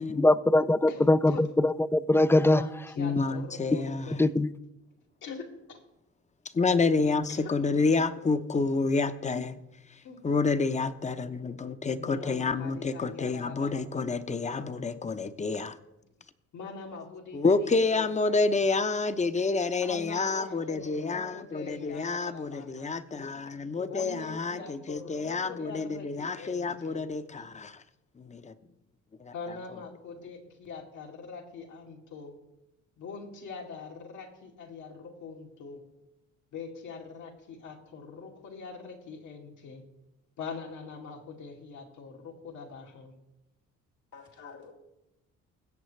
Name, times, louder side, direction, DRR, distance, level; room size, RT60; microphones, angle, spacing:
voice 1, 0.1-2.6 4.2-4.5, left 1 dB, 10° left, 16 dB, 0.3 m, -22 dB
voice 2, 0.9-1.4 2.4-4.2 5.2-5.8 7.3-7.6 7.9-8.0 10.0-10.2 12.0-14.7 16.5-18.7 19.8-22.9 23.9-27.0 27.4-27.5 29.3-32.4 33.0-35.8 36.5-39.9 40.4-43.1 44.1-44.7, left 5 dB, 80° left, 0 dB, 2.3 m, -43 dB
voice 3, 3.0-4.2 6.5-9.6 10.2-15.8 17.3-27.8 28.2-28.5 29.2-29.3, left 4 dB, 25° left, 11 dB, 0.7 m, -29 dB
21.5 x 8.0 x 3.2 m, 0.94 s
cardioid pair, 90°, 30 cm